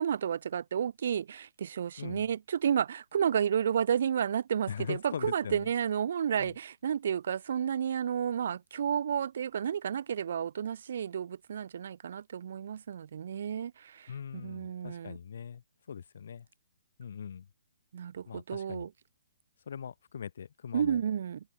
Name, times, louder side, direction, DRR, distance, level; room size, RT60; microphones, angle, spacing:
voice 1, 0.0-15.2 17.9-18.9 20.7-21.4, right 8 dB, 50° right, 0.4 m, -31 dB
voice 2, 2.0-2.3 4.7-5.7 6.4-6.6 14.1-16.5 17.0-17.5 18.3-18.9 19.7-21.0, left 7 dB, 55° left, 0.4 m, -41 dB
hypercardioid pair, 170°, 0 cm